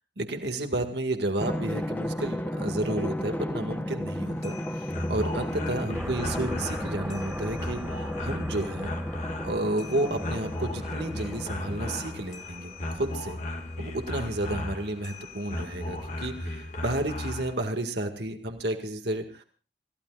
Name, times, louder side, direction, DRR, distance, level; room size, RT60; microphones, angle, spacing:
voice 1, 0.2-8.9 9.4-13.4 13.8-19.4, right 1 dB, 70° right, 5 dB, 2.0 m, -31 dB
Drum, 1.4-12.4, equal, 10° left, 0.9 m, -34 dB
sound 1, 4.3-17.5, left 1 dB, 45° left, 1.9 m, -36 dB
sound 2, 5.9-15.5, equal, 10° right, 1.1 m, -42 dB
28.0 x 15.5 x 2.5 m, 0.36 s
head